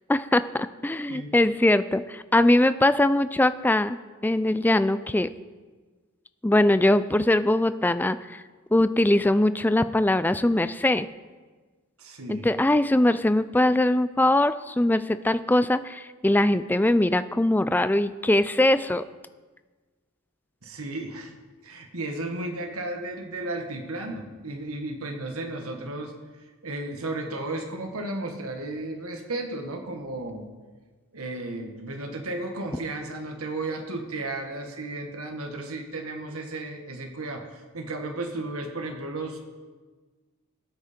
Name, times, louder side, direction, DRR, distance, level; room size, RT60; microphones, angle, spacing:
voice 1, 0.1-5.3 6.4-8.4 8.7-11.1 12.3-19.0, left 1 dB, 10° left, 13 dB, 0.3 m, -22 dB
voice 2, 12.0-12.5 20.6-21.3 21.6-26.1 26.6-30.5 31.1-39.4, right 2 dB, 75° right, 4 dB, 1.6 m, -34 dB
20.5 x 8.7 x 4.4 m, 1.4 s
head